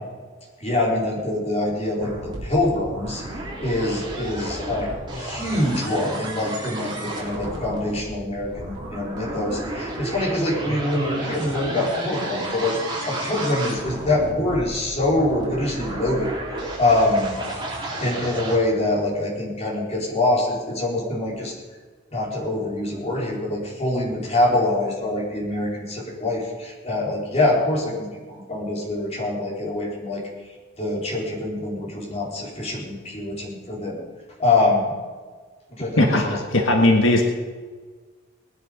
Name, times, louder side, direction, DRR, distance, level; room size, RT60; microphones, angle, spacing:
voice 1, 0.6-2.1 2.4-16.3 16.8-17.4 18.0-21.5 22.1-30.2 30.8-34.0 34.4-34.9 35.7-36.8, left 2 dB, 35° left, -3 dB, 4.3 m, -24 dB
sound 1, 2.0-18.6, right 1 dB, 25° right, 3.8 m, -32 dB
voice 2, 36.0-37.2, left 1 dB, 90° left, 2 dB, 1.6 m, -18 dB
19.5 x 10.5 x 5.3 m, 1.4 s
head